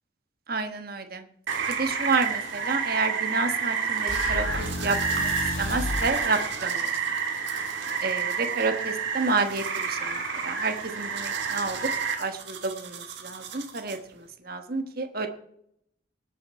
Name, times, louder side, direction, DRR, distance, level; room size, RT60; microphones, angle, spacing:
voice 1, 0.5-1.2 1.7-5.3 5.6-6.9 8.0-11.9 12.2-15.3, right 3 dB, 50° right, 7 dB, 1.3 m, -30 dB
Rain, 1.5-12.1, right 6 dB, 80° right, 2.6 m, -29 dB
sound 1, 4.1-6.2, left 2 dB, 85° left, 0.8 m, -32 dB
sound 2, 4.1-14.3, right 7 dB, 65° right, 1.6 m, -43 dB
19.5 x 7.5 x 4.7 m, 0.71 s
head